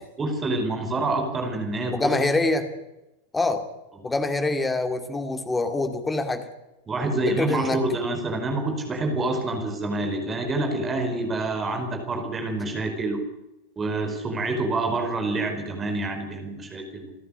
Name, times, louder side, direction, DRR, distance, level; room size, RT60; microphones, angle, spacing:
voice 1, 0.2-2.1 6.9-13.3 13.8-17.1, right 2 dB, 20° right, 5 dB, 5.1 m, -27 dB
voice 2, 1.9-2.7 3.3-3.6 4.0-6.4 7.3-7.8, left 2 dB, 10° left, 7 dB, 2.4 m, -25 dB
28.5 x 11.0 x 8.7 m, 0.96 s
figure-of-eight pair, 90°, 0 cm